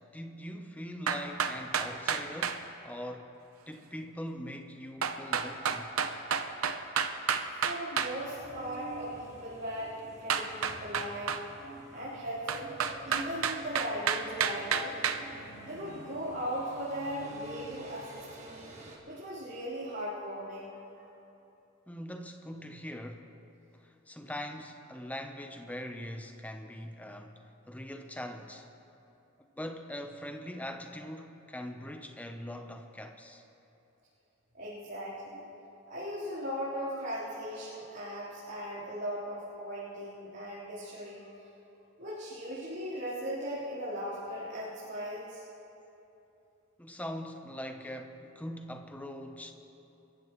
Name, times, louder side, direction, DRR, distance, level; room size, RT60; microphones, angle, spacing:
voice 1, 0.1-3.3 3.7-5.9 21.9-23.2 23.8-28.7 29.6-33.4 46.8-49.5, equal, 5° left, 5 dB, 0.8 m, -42 dB
sound 1, 1.1-2.6 5.0-8.1 10.3-11.4 12.5-15.2, right 7 dB, 85° right, 0.8 m, -30 dB
voice 2, 7.6-11.4 11.9-12.7 13.0-14.9 15.7-18.7 19.0-21.1 34.5-35.4 35.9-41.3 42.0-45.4, equal, 50° right, -13 dB, 3.9 m, -38 dB
sound 2, 8.1-19.0, right 1 dB, 30° right, 1.8 m, -49 dB
27.0 x 14.5 x 3.1 m, 2.9 s
head